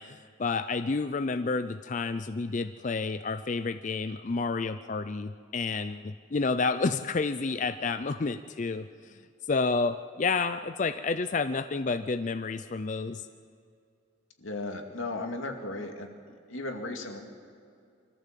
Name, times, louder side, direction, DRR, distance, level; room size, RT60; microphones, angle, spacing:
voice 1, 0.0-9.2 9.5-13.3, left 4 dB, 40° left, 10 dB, 0.4 m, -30 dB
voice 2, 14.4-16.1 16.5-17.2, left 2 dB, 90° left, 3 dB, 2.4 m, -35 dB
24.5 x 14.5 x 7.5 m, 2.3 s
head